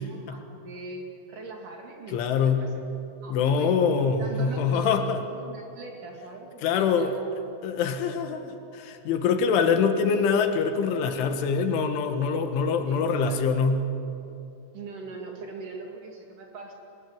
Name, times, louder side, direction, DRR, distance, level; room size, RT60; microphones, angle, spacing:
voice 1, 0.1-2.8 3.2-3.8 4.2-7.1 12.9-13.4 14.7-16.7, right 3 dB, 50° right, 1 dB, 3.5 m, -41 dB
voice 2, 2.1-2.6 3.3-5.2 6.6-7.2 7.6-8.5 8.7-13.9, left 5 dB, 85° left, 6 dB, 4.0 m, -24 dB
24.0 x 21.0 x 9.4 m, 2.8 s
omnidirectional pair, 5.4 m